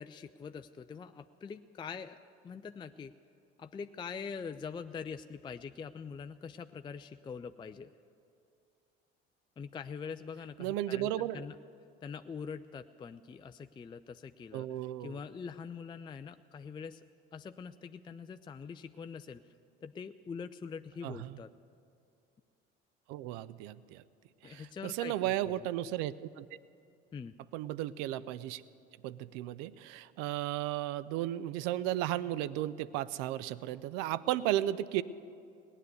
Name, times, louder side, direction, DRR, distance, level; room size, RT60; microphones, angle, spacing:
voice 1, 0.0-2.2 2.4-3.1 3.6-7.9 9.6-11.6 12.0-17.0 17.3-19.4 19.8-21.5 24.4-25.5 27.1-27.3, left 6 dB, 15° left, 9 dB, 0.4 m, -44 dB
voice 2, 10.6-11.5 14.5-15.2 21.0-21.3 23.1-24.0 24.4-26.5 27.5-28.6 29.0-35.0, right 13 dB, 60° right, 18 dB, 0.6 m, -34 dB
18.5 x 9.8 x 8.0 m, 2.5 s
figure-of-eight pair, 60°, 31 cm